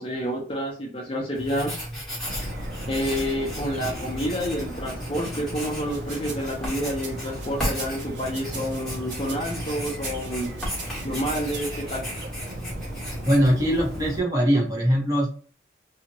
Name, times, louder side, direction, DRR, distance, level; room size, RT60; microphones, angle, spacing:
voice 1, 0.0-1.7 2.9-10.5 11.0-12.0, equal, 30° left, -1 dB, 0.6 m, -29 dB
Writing, 1.3-14.2, equal, 5° left, 1.3 m, -35 dB
sound 1, 2.3-14.2, equal, 65° right, 0.7 m, -37 dB
sound 2, 5.8-11.6, right 4 dB, 85° right, 1.1 m, -42 dB
voice 2, 13.2-15.3, equal, 20° right, -2 dB, 1.0 m, -21 dB
2.7 x 2.4 x 2.9 m, 0.42 s
head